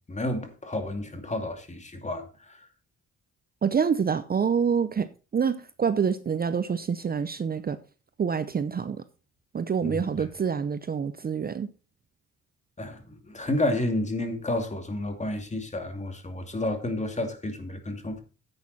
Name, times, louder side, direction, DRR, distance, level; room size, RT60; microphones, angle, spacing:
voice 1, 0.1-2.6 9.8-10.3 12.8-18.2, left 1 dB, 25° left, 2.5 m, -31 dB
voice 2, 3.6-5.1 5.3-7.8 8.2-9.0 9.5-11.7, right 6 dB, 30° right, 0.7 m, -26 dB
10.5 x 8.4 x 4.2 m
cardioid pair, 90°, 30 cm